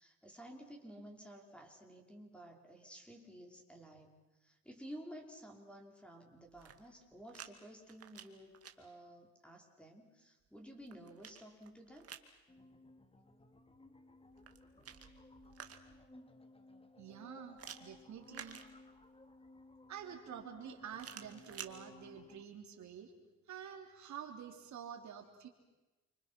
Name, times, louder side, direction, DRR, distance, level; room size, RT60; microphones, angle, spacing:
voice 1, 0.0-12.1 14.7-14.9, equal, 5° left, 2 dB, 5.3 m, -53 dB
sound 1, 6.4-7.5 7.8-8.7 10.5-12.3 14.3-16.1 17.6-19.2 20.9-21.7, right 8 dB, 50° right, 2.3 m, -52 dB
sound 2, 12.5-22.4, left 2 dB, 20° left, 2.3 m, -59 dB
voice 2, 17.0-18.6 19.9-23.1 23.5-25.5, right 8 dB, 70° right, 4 dB, 3.3 m, -48 dB
30.0 x 25.0 x 6.1 m, 1.1 s
cardioid pair, 90°, 30 cm